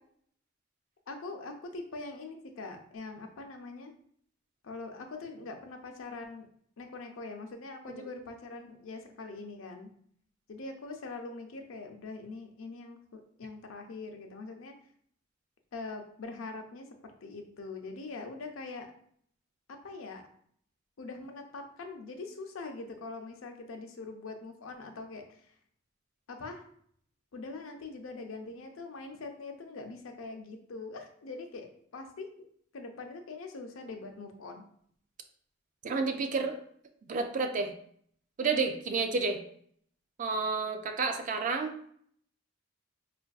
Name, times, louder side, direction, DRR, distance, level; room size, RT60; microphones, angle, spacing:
voice 1, 1.1-3.9 4.6-6.5 6.8-9.9 10.5-14.7 15.7-18.9 19.7-20.2 21.0-25.5 26.3-26.7 27.3-32.5 32.7-34.6, left 3 dB, 90° left, 4 dB, 0.5 m, -43 dB
voice 2, 35.8-36.6 37.1-37.7 38.4-39.4 40.2-41.9, right 4 dB, 40° right, 6 dB, 0.3 m, -30 dB
4.5 x 2.5 x 2.4 m, 0.64 s
head